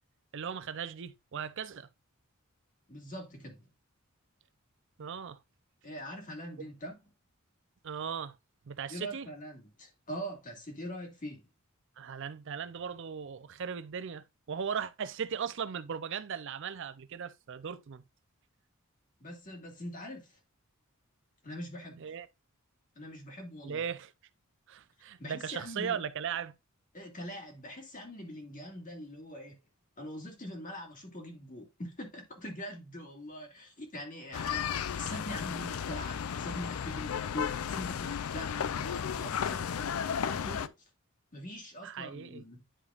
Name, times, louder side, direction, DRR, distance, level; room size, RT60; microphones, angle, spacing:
voice 1, 0.3-1.9 5.0-5.4 7.8-8.3 8.7-9.3 12.0-18.0 22.0-22.3 23.6-24.1 24.7-26.5 41.8-42.4, right 7 dB, 60° right, 0.5 m, -38 dB
voice 2, 2.9-3.7 5.8-7.0 8.9-11.5 19.2-20.4 21.4-22.0 23.0-23.8 25.2-26.0 26.9-29.6 30.0-40.7 41.3-42.6, equal, 40° left, 2.1 m, -43 dB
sound 1, 34.3-40.7, left 7 dB, 75° left, 0.4 m, -34 dB
10.0 x 5.0 x 2.4 m
head